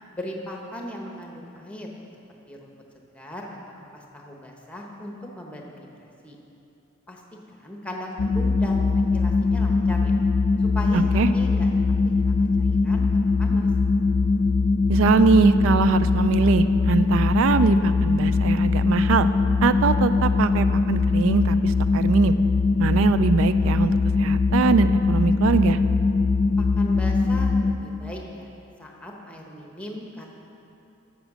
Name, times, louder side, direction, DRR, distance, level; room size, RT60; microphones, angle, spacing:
voice 1, 0.1-1.9 2.5-2.7 3.1-6.4 7.1-7.2 7.5-10.2 10.6-11.7 12.0-13.7 26.6-28.5 28.8-30.3, left 1 dB, 5° left, 0 dB, 1.0 m, -38 dB
sound 1, 8.2-27.7, left 4 dB, 45° left, 0.3 m, -21 dB
voice 2, 10.9-11.3 14.9-19.3 19.6-22.3 22.8-25.8, right 5 dB, 75° right, 12 dB, 0.3 m, -22 dB
10.0 x 7.4 x 6.2 m, 2.8 s
head